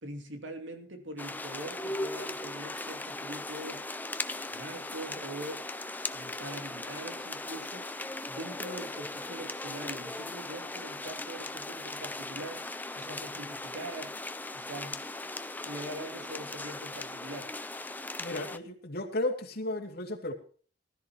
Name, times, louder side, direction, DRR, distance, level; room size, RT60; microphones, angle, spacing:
voice 1, 0.0-3.9 4.5-5.7 6.1-7.9 8.3-12.6 12.9-14.1 14.5-15.0 15.6-17.5, right 1 dB, 80° right, 5 dB, 2.7 m, -43 dB
sound 1, 1.2-18.6, left 2 dB, 10° left, 0.7 m, -38 dB
voice 2, 18.2-20.3, left 2 dB, 55° left, 2 dB, 2.5 m, -34 dB
19.5 x 13.0 x 3.0 m, 0.44 s
head